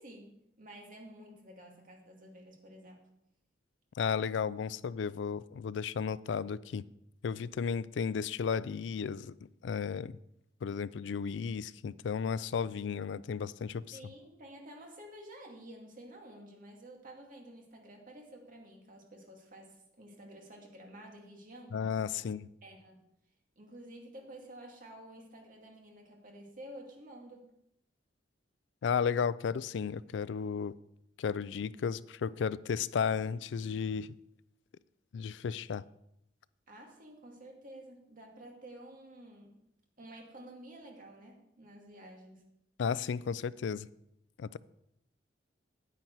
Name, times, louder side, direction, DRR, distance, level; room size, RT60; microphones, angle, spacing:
voice 1, 0.0-3.0 13.9-21.8 22.6-23.0 23.6-27.5 36.7-39.6 40.0-42.5, right 1 dB, 50° right, 2.2 m, -51 dB
voice 2, 4.0-6.8 7.2-9.3 9.6-10.2 10.6-14.0 21.7-22.5 28.8-30.7 31.2-34.1 35.1-35.8 42.8-43.9 44.4-44.6, left 6 dB, 75° left, 0.4 m, -34 dB
9.6 x 9.2 x 4.6 m
head